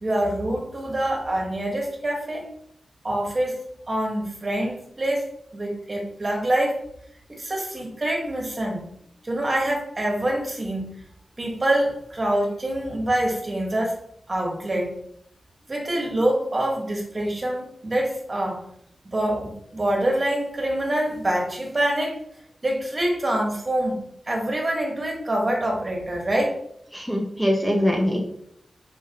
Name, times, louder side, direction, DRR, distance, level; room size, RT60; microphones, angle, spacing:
voice 1, 0.0-2.4 3.0-3.6 3.9-5.3 5.5-6.8 7.3-8.9 9.2-10.9 11.4-14.0 14.3-14.9 15.7-18.6 19.0-22.2 22.6-24.0 24.3-26.6, right 1 dB, 30° right, 0 dB, 1.6 m, -25 dB
voice 2, 26.9-28.2, equal, 5° left, 0 dB, 0.8 m, -22 dB
6.2 x 5.0 x 3.0 m, 0.71 s
wide cardioid pair, 100°, 0 cm